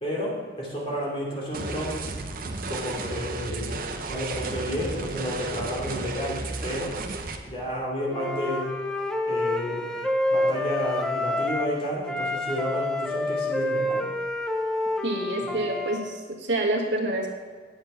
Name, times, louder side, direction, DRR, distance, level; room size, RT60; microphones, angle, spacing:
voice 1, 0.0-2.0 2.7-6.9 7.4-8.7 9.3-9.9 10.3-14.0 15.4-15.5, equal, 30° left, -4 dB, 2.9 m, -31 dB
sound 1, 1.5-7.4, right 3 dB, 50° right, 0.8 m, -33 dB
Wind instrument woodwind instrument, 8.1-11.8 12.0-16.0, left 1 dB, 5° left, 0.5 m, -28 dB
voice 2, 15.0-17.3, right 1 dB, 75° right, -1 dB, 1.6 m, -27 dB
9.5 x 7.4 x 5.6 m, 1.5 s
head